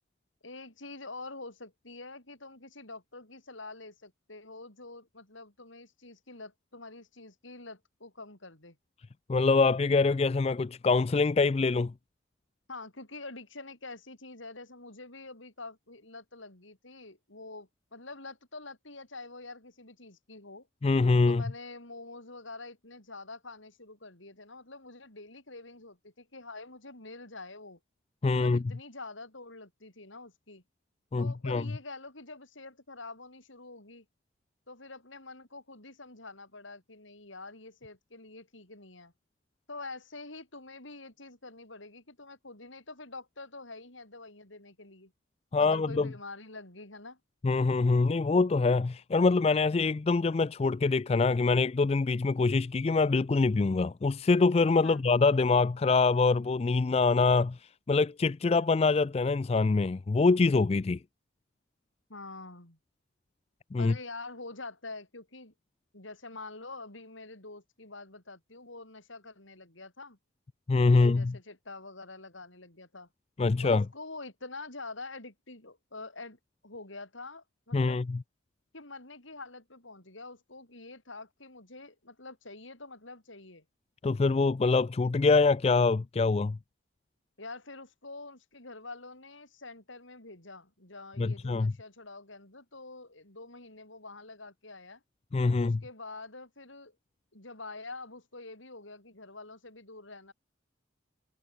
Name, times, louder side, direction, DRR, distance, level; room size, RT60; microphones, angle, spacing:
voice 1, 0.4-8.8 12.7-20.7 21.3-27.8 28.3-30.6 31.2-34.0 34.7-39.1 39.7-45.1 45.6-47.2 54.8-55.1 62.1-62.8 63.8-65.5 65.9-70.2 70.8-73.1 73.6-78.0 78.7-83.6 87.4-95.0 95.5-96.9 97.3-100.3, left 3 dB, 80° left, 7.9 m, -46 dB
voice 2, 9.3-11.9 20.8-21.4 28.2-28.6 31.1-31.6 45.5-46.1 47.4-57.6 57.9-61.0 63.7-63.9 70.7-71.4 73.4-73.8 77.7-78.2 84.0-86.6 91.2-91.7 95.3-95.8, left 3 dB, 30° left, 0.3 m, -25 dB
head